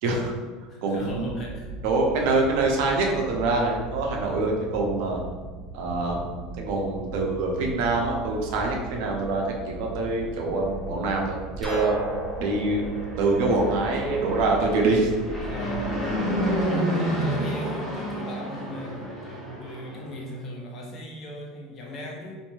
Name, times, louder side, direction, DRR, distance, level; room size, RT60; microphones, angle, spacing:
voice 1, 0.0-0.3 0.8-1.4 1.8-5.2 5.7-12.0 12.4-12.8 13.2-15.1, right 3 dB, 65° right, 0 dB, 0.5 m, -25 dB
voice 2, 0.7-1.6 15.4-15.9 16.6-22.4, equal, 40° left, -1 dB, 0.6 m, -38 dB
sound 1, 1.0-16.6, right 2 dB, 30° right, 1.0 m, -39 dB
sound 2, 11.6-14.4, right 1 dB, 5° right, 0.7 m, -34 dB
Fixed-wing aircraft airplane, 12.7-20.1, equal, 10° left, 1.2 m, -30 dB
2.8 x 2.5 x 2.3 m, 1.4 s
hypercardioid pair, 80°, 0 cm